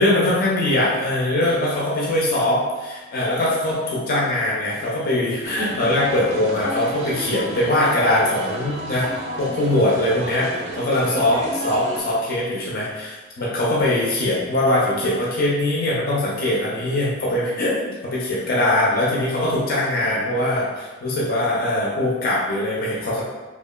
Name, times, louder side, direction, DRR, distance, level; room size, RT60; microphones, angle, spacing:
voice 1, 0.0-9.1 9.4-17.8 18.1-23.2, left 1 dB, 45° left, -5 dB, 0.5 m, -21 dB
sound 1, 5.4-12.0, right 1 dB, 30° right, 0.3 m, -32 dB
2.8 x 2.3 x 2.3 m, 1.3 s
head